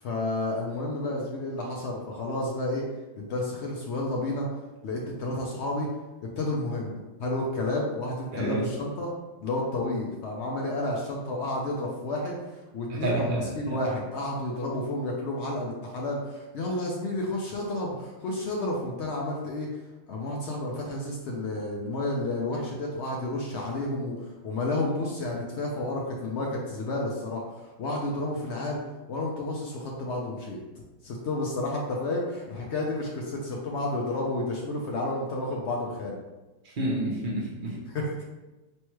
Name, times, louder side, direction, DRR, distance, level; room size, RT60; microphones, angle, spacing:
voice 1, 0.0-2.8 3.2-4.5 4.8-5.9 6.4-9.1 9.4-19.7 20.1-28.8 29.1-30.6 31.0-36.2 37.7-38.2, left 2 dB, 85° left, -2 dB, 0.6 m, -31 dB
voice 2, 8.3-8.7 12.9-13.5 36.6-37.8, right 2 dB, 55° right, -2 dB, 0.5 m, -29 dB
4.5 x 3.2 x 3.0 m, 1.1 s
omnidirectional pair, 1.9 m